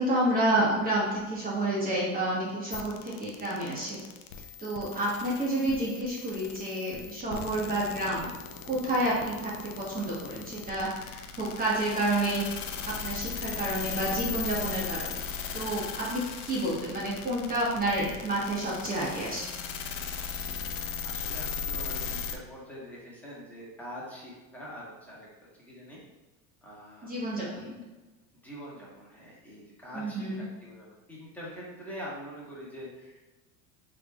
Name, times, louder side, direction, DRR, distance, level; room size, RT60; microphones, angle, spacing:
voice 1, 0.0-4.0 4.6-8.3 8.6-12.4 13.0-15.2 15.5-19.5 27.0-27.8 29.9-30.4, right 1 dB, 20° right, -6 dB, 1.0 m, -29 dB
sound 1, 2.7-22.4, left 6 dB, 80° left, 0.6 m, -38 dB
voice 2, 21.0-25.3 25.6-26.0 26.6-27.1 28.4-33.3, equal, 5° left, -6 dB, 1.2 m, -44 dB
3.7 x 3.5 x 2.2 m, 1.2 s
supercardioid pair, 120°, 42 cm